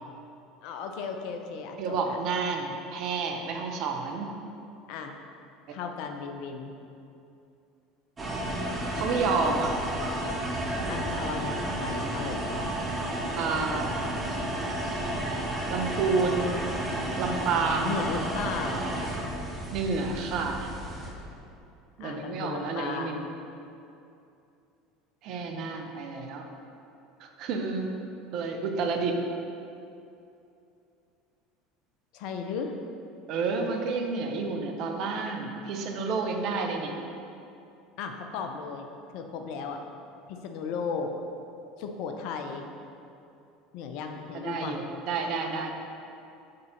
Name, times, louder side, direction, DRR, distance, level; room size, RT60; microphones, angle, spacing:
voice 1, 0.6-2.2 2.7-2.8 4.9-5.2 5.7-6.7 10.9-12.4 17.8-19.0 22.0-23.3 32.1-32.7 38.0-38.9 39.1-39.8 40.3-41.1 41.8-42.6 43.7-44.8, left 5 dB, 60° left, 4 dB, 0.6 m, -35 dB
voice 2, 1.8-4.3 8.9-9.7 13.4-13.9 15.7-16.5 17.2-17.9 19.7-20.7 22.0-23.3 25.2-26.5 27.2-27.9 28.3-29.1 33.3-37.0 44.4-45.7, right 4 dB, 55° right, 3 dB, 0.7 m, -29 dB
sound 1, 8.2-21.1, right 1 dB, 25° right, 1.2 m, -32 dB
5.3 x 3.9 x 5.6 m, 2.7 s
hypercardioid pair, 70°, 0 cm